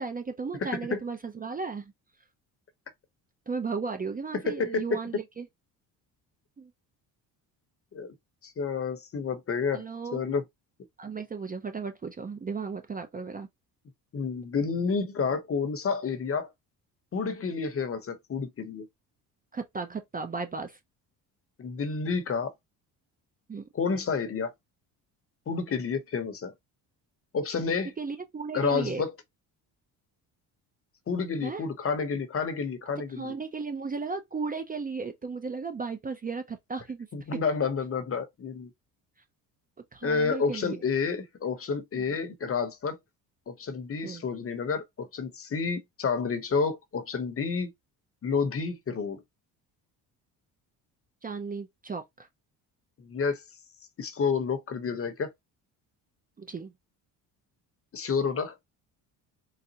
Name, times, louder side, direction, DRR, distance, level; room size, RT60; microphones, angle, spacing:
voice 1, 0.0-1.9 3.5-5.5 6.6-6.7 9.7-10.2 11.0-13.5 19.5-20.8 23.5-23.7 28.0-29.0 31.4-31.7 33.2-37.1 39.9-40.8 42.0-42.1 44.0-44.2 51.2-52.3 56.4-56.7, right 4 dB, 20° right, 0.5 m, -35 dB
voice 2, 0.6-1.0 4.3-5.0 7.9-8.1 8.4-9.8 10.1-10.4 14.1-16.5 17.1-18.9 21.6-22.5 23.7-24.5 25.5-26.5 27.3-27.9 28.5-29.1 31.1-33.3 37.1-38.7 40.0-43.0 43.5-47.7 48.2-49.2 53.0-53.4 54.0-55.3 57.9-58.6, left 5 dB, 35° left, 0.9 m, -30 dB
4.0 x 2.1 x 2.8 m
cardioid pair, 95°, 39 cm